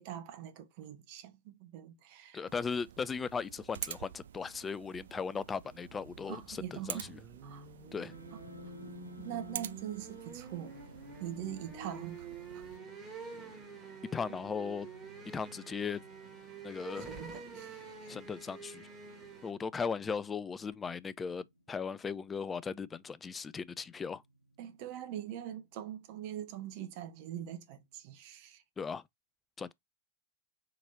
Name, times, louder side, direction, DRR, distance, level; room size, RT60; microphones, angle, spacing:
voice 1, 0.0-2.5 6.3-7.1 7.4-7.7 9.2-10.8 11.2-12.3 12.5-12.6 13.8-14.0 14.3-14.4 17.1-18.1 24.6-28.6, right 11 dB, 45° right, 0.9 m, -43 dB
voice 2, 2.3-7.2 7.9-8.1 14.1-14.9 15.3-16.0 16.6-17.1 18.1-18.9 19.4-24.2 28.8-29.0 29.6-29.7, left 5 dB, 20° left, 0.3 m, -37 dB
sound 1, 2.4-12.8, right 9 dB, 65° right, 0.3 m, -48 dB
sound 2, 5.9-19.5, right 4 dB, 25° right, 1.5 m, -48 dB
sound 3, 8.1-28.0, equal, 85° right, 0.8 m, -59 dB
3.9 x 3.0 x 3.9 m
figure-of-eight pair, 90°, 0 cm